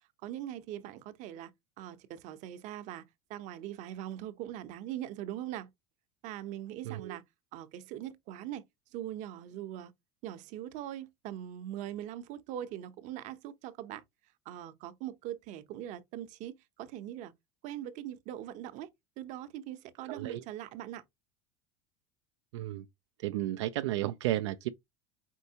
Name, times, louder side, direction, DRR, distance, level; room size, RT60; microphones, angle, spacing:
voice 1, 0.2-1.5 1.8-3.0 3.3-5.7 6.2-7.2 7.5-8.6 8.9-9.9 10.2-14.0 14.5-17.3 17.6-18.9 19.2-21.0, right 12 dB, 55° right, 0.7 m, -41 dB
voice 2, 6.9-7.2 20.1-20.4 22.5-22.8 23.2-24.7, right 14 dB, 90° right, 0.4 m, -33 dB
4.5 x 4.1 x 2.7 m
supercardioid pair, 110°, 15 cm